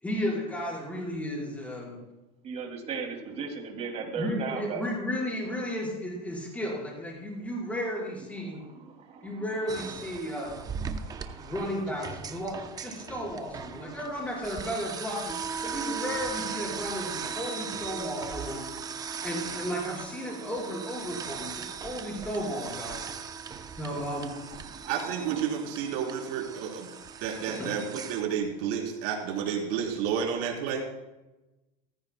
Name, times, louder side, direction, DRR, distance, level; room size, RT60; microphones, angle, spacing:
voice 1, 0.0-2.0 4.1-8.6 9.2-10.6 11.4-15.3 15.6-18.7 19.2-23.0 23.8-24.3 27.6-27.7, equal, 10° left, -4 dB, 4.8 m, -34 dB
voice 2, 2.4-4.8 8.5-9.4 10.9-11.5 20.4-20.5 21.3-21.4 24.7-25.4, right 5 dB, 35° right, 2 dB, 2.6 m, -37 dB
sound 1, 9.7-28.2, right 6 dB, 20° right, 0.7 m, -38 dB
voice 3, 24.9-26.9 27.2-30.8, right 7 dB, 60° right, 0 dB, 3.7 m, -31 dB
18.0 x 15.0 x 2.3 m, 1.0 s
supercardioid pair, 145°, 19 cm